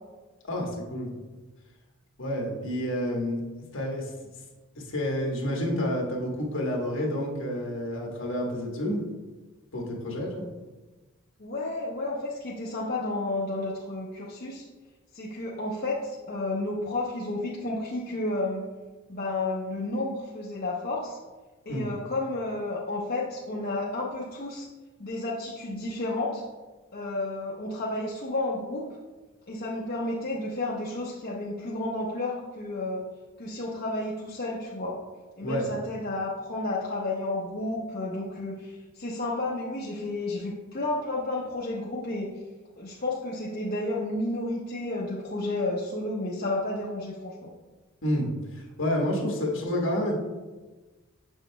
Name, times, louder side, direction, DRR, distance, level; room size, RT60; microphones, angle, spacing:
voice 1, 0.4-1.1 2.2-3.4 3.7-4.1 4.7-9.0 9.7-10.4 21.7-21.8 35.4-35.7 48.0-50.2, equal, 60° left, -1 dB, 1.2 m, -29 dB
voice 2, 11.4-14.6 15.1-18.7 19.1-21.2 21.7-24.7 25.0-26.4 26.9-28.9 29.5-33.0 33.4-35.0 35.4-42.3 42.8-47.5, left 2 dB, 45° left, -5 dB, 0.7 m, -31 dB
7.1 x 6.3 x 2.2 m, 1.2 s
head